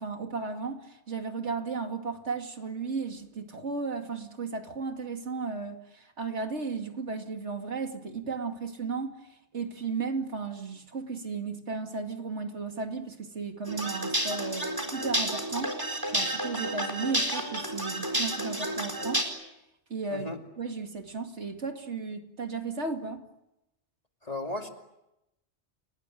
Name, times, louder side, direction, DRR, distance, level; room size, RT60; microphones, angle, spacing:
voice 1, 0.0-9.2 9.5-19.3 19.9-20.3 20.6-23.2, right 4 dB, 80° right, 5 dB, 2.7 m, -35 dB
sound 1, 13.7-19.2, right 1 dB, 20° right, 4.3 m, -31 dB
voice 2, 24.2-24.7, left 2 dB, 35° left, 4 dB, 2.7 m, -35 dB
29.5 x 19.0 x 9.2 m, 0.90 s
omnidirectional pair, 1.2 m